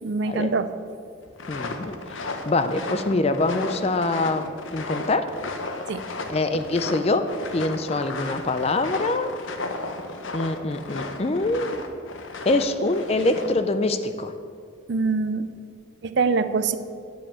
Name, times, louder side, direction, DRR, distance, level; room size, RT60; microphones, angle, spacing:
voice 1, 0.0-0.7 5.9-6.0 14.9-15.5 16.0-16.8, right 4 dB, 60° right, 11 dB, 0.5 m, -24 dB
Walking On Snow, 1.3-13.6, left 3 dB, 75° left, 0.8 m, -34 dB
voice 2, 1.5-5.3 6.3-7.3 7.5-9.3 10.3-11.7 12.4-14.3, left 2 dB, 30° left, 9 dB, 0.4 m, -24 dB
9.9 x 5.2 x 7.0 m, 2.2 s
head